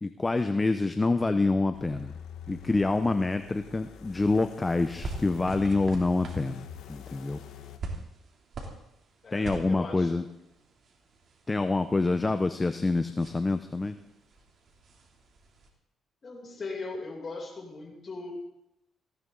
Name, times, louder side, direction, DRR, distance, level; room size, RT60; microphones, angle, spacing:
voice 1, 0.0-2.1 2.5-7.4 9.3-10.2 11.5-14.0, left 3 dB, 20° left, 9 dB, 0.8 m, -26 dB
sound 1, 1.7-7.8, left 8 dB, 85° left, 1.5 m, -45 dB
sound 2, 4.8-15.7, right 3 dB, 55° right, 3.2 m, -45 dB
voice 2, 9.2-10.1 16.2-18.3, left 3 dB, 40° left, -1 dB, 7.0 m, -39 dB
18.5 x 16.5 x 4.0 m, 0.83 s
cardioid pair, 90°, 0 cm